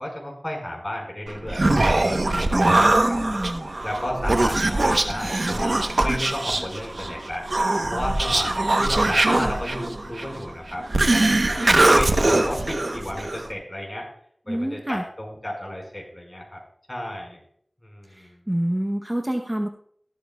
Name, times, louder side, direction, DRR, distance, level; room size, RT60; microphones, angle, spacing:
voice 1, 0.0-1.6 2.0-2.9 3.8-7.5 7.9-8.5 8.8-11.6 11.9-14.1 14.5-16.6 16.9-17.4 17.8-18.4, left 1 dB, 30° left, 0 dB, 5.0 m, -32 dB
Human voice, 1.3-13.5, right 2 dB, 65° right, 0.9 m, -22 dB
voice 2, 2.5-3.7 11.6-11.8 14.5-15.0 18.0-19.7, right 1 dB, 20° right, 3 dB, 0.8 m, -27 dB
13.5 x 12.5 x 2.3 m, 0.62 s
wide cardioid pair, 50°, 0 cm